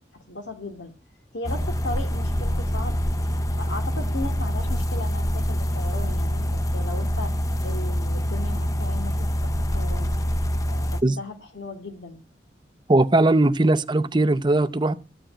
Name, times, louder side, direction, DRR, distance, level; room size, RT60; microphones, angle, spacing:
voice 1, 0.1-0.9 1.3-3.0 3.5-7.4 7.6-10.2 10.6-12.2, left 2 dB, 85° left, 2.2 m, -36 dB
sound 1, 1.4-11.0, equal, 20° left, 0.6 m, -25 dB
voice 2, 12.9-14.9, right 2 dB, 25° right, 0.6 m, -19 dB
14.0 x 5.0 x 8.7 m
head